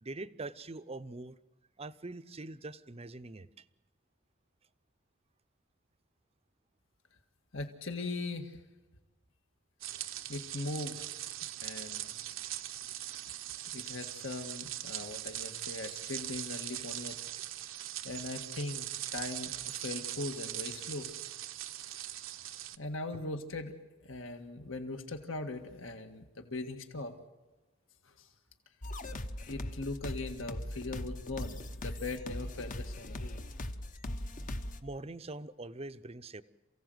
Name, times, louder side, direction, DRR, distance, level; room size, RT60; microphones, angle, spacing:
voice 1, 0.0-1.4 1.8-3.6 17.3-17.4 34.8-36.4, right 2 dB, 30° right, 12 dB, 0.7 m, -43 dB
voice 2, 7.5-8.6 10.3-11.1 11.6-12.1 13.7-17.2 18.0-21.1 22.8-23.7 24.0-27.1 28.0-28.3 29.4-33.4, left 2 dB, 70° left, 5 dB, 1.8 m, -40 dB
sound 1, 9.8-22.8, right 13 dB, 70° right, 0.8 m, -41 dB
sound 2, 28.8-34.8, left 1 dB, 40° left, 1.0 m, -40 dB
28.0 x 16.5 x 7.9 m, 1.2 s
head